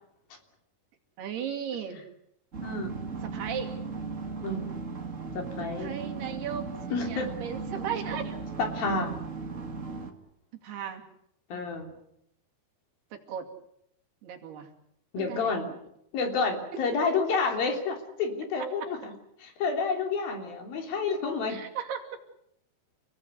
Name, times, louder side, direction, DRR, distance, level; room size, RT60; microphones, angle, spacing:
voice 1, 1.2-2.0 3.2-3.7 5.8-8.4 10.5-11.0 13.1-13.5 14.2-14.7 15.2-15.5 18.8-18.9 21.5-22.1, right 8 dB, 80° right, 3 dB, 4.5 m, -36 dB
sound 1, 2.5-10.1, right 4 dB, 30° right, 1.5 m, -37 dB
voice 2, 2.6-3.0 4.4-4.7 5.3-6.2 6.9-7.3 8.6-9.2 11.5-11.9 15.1-15.7 16.1-19.1 19.4-21.6, left 4 dB, 65° left, 4 dB, 5.0 m, -29 dB
30.0 x 17.0 x 8.3 m, 0.75 s
omnidirectional pair, 4.6 m